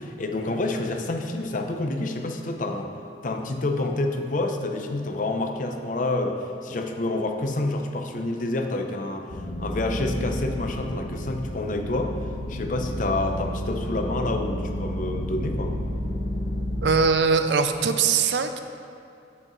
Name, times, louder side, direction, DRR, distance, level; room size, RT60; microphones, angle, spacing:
voice 1, 0.0-2.9 3.2-9.3 9.6-12.2 12.5-15.8, left 2 dB, 45° left, 4 dB, 0.6 m, -28 dB
sound 1, 9.3-16.8, equal, 70° left, 1.1 m, -31 dB
voice 2, 16.8-18.6, right 5 dB, 75° right, 8 dB, 0.5 m, -21 dB
9.3 x 7.9 x 3.1 m, 2.5 s
head